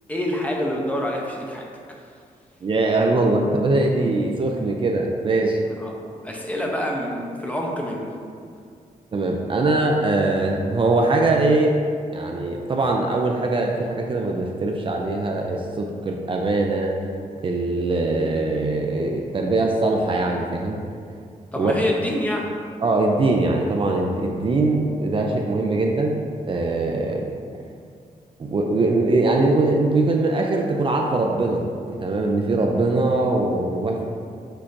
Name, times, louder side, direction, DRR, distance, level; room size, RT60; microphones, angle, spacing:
voice 1, 0.1-1.7 5.8-5.9 6.2-8.1 21.5-22.5, left 1 dB, 10° left, -2 dB, 0.6 m, -26 dB
voice 2, 2.6-5.6 9.1-11.7 12.1-16.9 17.4-20.8 21.6-21.7 22.8-26.1 26.5-27.3 28.4-34.1, right 2 dB, 35° right, 1 dB, 0.4 m, -22 dB
6.3 x 2.8 x 2.5 m, 2.2 s
cardioid pair, 95°, 14 cm